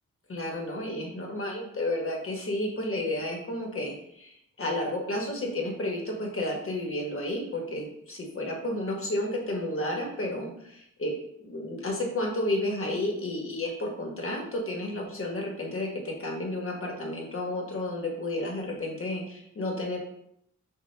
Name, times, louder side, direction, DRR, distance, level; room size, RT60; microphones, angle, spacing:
voice 1, 0.3-11.1 11.5-20.0, left 1 dB, 45° left, 0 dB, 1.2 m, -32 dB
6.7 x 2.4 x 3.3 m, 0.74 s
wide cardioid pair, 110°, 31 cm